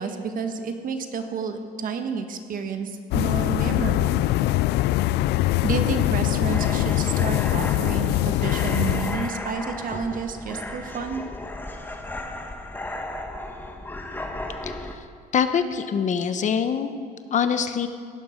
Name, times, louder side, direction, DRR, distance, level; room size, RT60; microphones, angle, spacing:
voice 1, 0.0-4.2 5.6-11.2, right 5 dB, 55° right, 6 dB, 1.5 m, -30 dB
sound 1, 3.1-9.3, left 16 dB, 80° left, 0.4 m, -23 dB
sound 2, 6.5-14.9, left 1 dB, 10° left, 1.3 m, -34 dB
voice 2, 14.7-15.0 15.3-16.9 17.3-17.9, left 7 dB, 45° left, 10 dB, 0.9 m, -24 dB
17.0 x 11.5 x 5.2 m, 2.1 s
cardioid pair, 110°, 17 cm